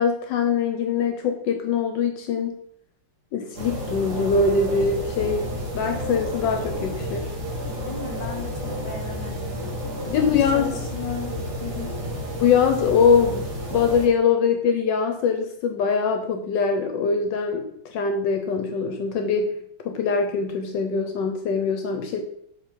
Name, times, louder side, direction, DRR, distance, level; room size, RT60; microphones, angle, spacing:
voice 1, 0.0-2.5 3.3-5.5 5.7-7.3 10.0-10.8 12.4-13.4 13.7-19.5 19.8-22.2, left 5 dB, 75° left, 5 dB, 1.2 m, -22 dB
sound 1, 3.5-14.1, equal, 60° right, 1.9 m, -31 dB
voice 2, 7.6-8.5 8.8-9.7 10.3-11.9, left 4 dB, 30° left, 2 dB, 0.9 m, -36 dB
6.5 x 4.0 x 4.5 m, 0.73 s
omnidirectional pair, 2.1 m